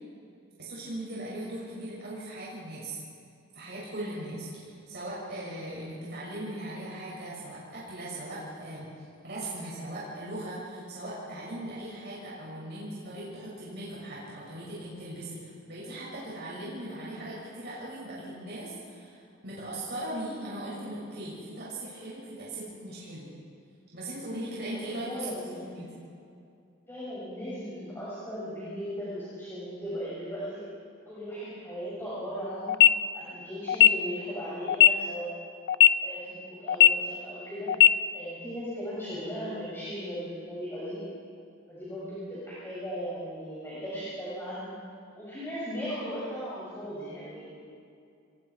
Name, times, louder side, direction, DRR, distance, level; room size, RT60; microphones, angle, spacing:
voice 1, 0.6-3.0 3.5-8.9 9.2-23.3 23.9-25.3 25.5-25.9, right 1 dB, 55° right, -7 dB, 6.8 m, -39 dB
voice 2, 24.7-25.8 26.9-30.6 31.1-32.7 33.1-35.3 36.0-37.7 38.1-41.0 41.7-44.8 45.1-47.5, equal, 10° left, -10 dB, 7.1 m, -37 dB
sound 1, 32.7-32.9 33.7-33.9 34.7-34.9 35.7-35.9 36.7-36.9 37.7-37.9, left 11 dB, 60° left, 0.5 m, -16 dB
29.0 x 21.5 x 4.9 m, 2.5 s
head